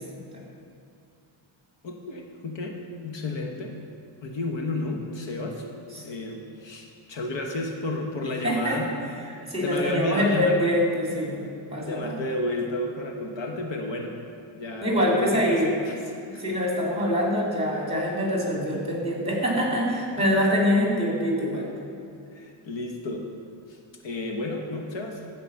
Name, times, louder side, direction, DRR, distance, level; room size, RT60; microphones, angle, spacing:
voice 1, 1.8-3.8 4.2-5.7 6.0-8.9 9.6-10.8 11.6-14.2 14.5-16.4 20.1-20.4 22.3-23.3 23.7-25.2, left 2 dB, 60° left, 3 dB, 1.3 m, -32 dB
voice 2, 8.4-8.8 9.5-11.4 11.7-12.1 14.8-15.7 16.2-21.7, equal, 10° right, -2 dB, 2.9 m, -24 dB
15.0 x 5.1 x 7.1 m, 2.6 s
cardioid pair, 125°, 49 cm